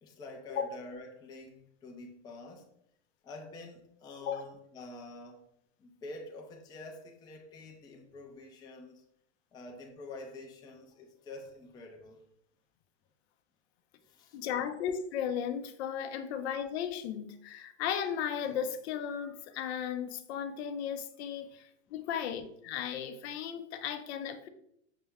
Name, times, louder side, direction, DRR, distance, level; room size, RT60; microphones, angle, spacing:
voice 1, 0.0-2.7 3.2-5.4 5.8-9.0 9.5-12.2 14.0-14.4 16.0-16.1 21.4-21.5 21.9-22.0, left 2 dB, 10° left, 0.4 m, -47 dB
voice 2, 14.3-24.5, left 8 dB, 60° left, 0.6 m, -35 dB
5.8 x 2.1 x 3.4 m
hypercardioid pair, 120°, 35 cm